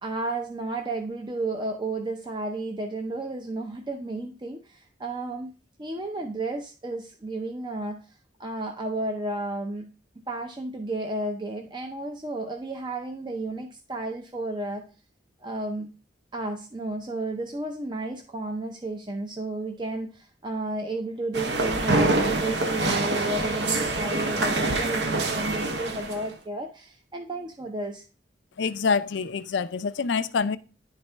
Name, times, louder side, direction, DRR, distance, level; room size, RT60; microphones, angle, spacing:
voice 1, 0.0-5.5 5.8-9.9 10.3-14.8 15.4-15.9 16.3-28.0, right 2 dB, 25° right, 0.6 m, -32 dB
sound 1, 21.3-26.3, right 2 dB, 65° right, 0.9 m, -25 dB
voice 2, 28.6-30.6, left 5 dB, 75° left, 0.4 m, -26 dB
10.5 x 4.1 x 3.3 m
head